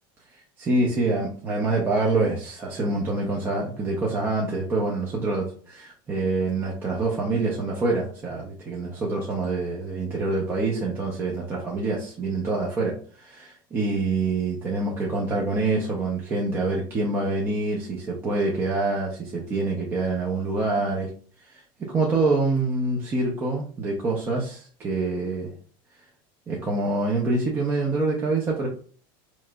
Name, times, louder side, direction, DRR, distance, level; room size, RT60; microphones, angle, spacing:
voice 1, 0.6-5.4 5.8-21.1 21.5-25.5 26.5-28.7, right 3 dB, 20° right, -3 dB, 0.6 m, -26 dB
4.7 x 3.0 x 2.2 m, 0.43 s
cardioid pair, 170°, 12 cm